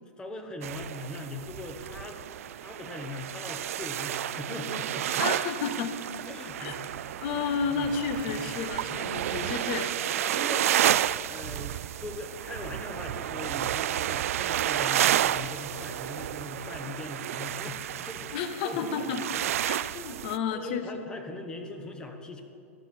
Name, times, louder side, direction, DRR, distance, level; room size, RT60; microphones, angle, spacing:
voice 1, 0.2-2.2 2.5-5.2 6.2-6.9 7.3-7.9 8.2-8.6 8.9-9.0 9.4-9.9 10.2-18.9 19.2-19.6 20.5-22.4, left 2 dB, 10° left, 5 dB, 1.0 m, -41 dB
sound 1, 0.6-20.4, right 12 dB, 75° right, 0.3 m, -31 dB
voice 2, 5.2-6.0 6.6-6.7 7.2-9.9 18.3-19.2 19.6-20.9, left 6 dB, 45° left, 9 dB, 0.8 m, -31 dB
14.0 x 12.0 x 4.4 m, 2.5 s
supercardioid pair, 155°, 8 cm